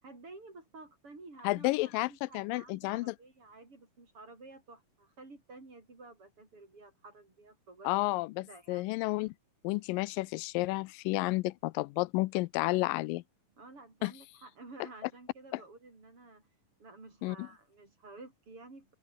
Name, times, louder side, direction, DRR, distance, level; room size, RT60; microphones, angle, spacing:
voice 1, 0.0-7.9 8.4-8.9 13.6-16.5 16.8-18.9, right 3 dB, 40° right, 7.1 m, -52 dB
voice 2, 1.4-3.1 7.9-9.3 9.6-13.2 14.0-14.1 15.5-15.6 17.2-17.4, left 21 dB, 85° left, 2.3 m, -31 dB
open air
omnidirectional pair, 3.9 m